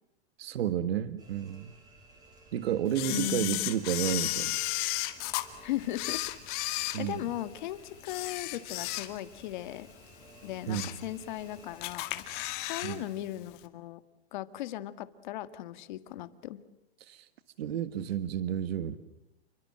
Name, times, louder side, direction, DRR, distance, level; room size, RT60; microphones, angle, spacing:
voice 1, 0.4-1.7 2.5-4.6 6.9-7.3 10.7-11.0 12.8-13.1 17.0-17.3 17.6-19.0, right 10 dB, 70° right, 12 dB, 1.7 m, -31 dB
sound 1, 1.2-12.6, right 2 dB, 10° right, 6.9 m, -57 dB
Camera, 2.9-5.4 5.9-7.6 8.0-9.4 9.8-9.9 10.4-11.0 11.4-11.5 11.8-13.0 13.2-13.3, left 18 dB, 30° left, 2.2 m, -34 dB
voice 2, 3.1-3.7 5.6-6.2 6.6-9.9 10.4-12.2 12.6-14.0 14.3-16.6, left 14 dB, 45° left, 12 dB, 1.8 m, -37 dB
30.0 x 23.0 x 7.7 m, 0.91 s
supercardioid pair, 165°, 32 cm